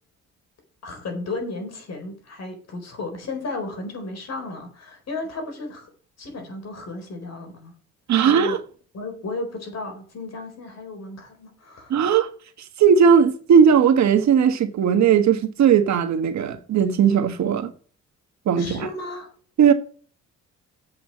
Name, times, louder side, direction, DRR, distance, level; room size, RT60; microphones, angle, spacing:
voice 1, 0.8-5.9 6.2-7.7 8.1-8.6 8.9-12.0 18.6-19.3, left 2 dB, 60° left, 4.3 m, -34 dB
voice 2, 8.1-8.6 11.9-12.3 12.8-17.7 18.5-18.9 19.6-19.7, right 7 dB, 65° right, 1.4 m, -17 dB
7.9 x 5.8 x 7.2 m
cardioid pair, 90°, 30 cm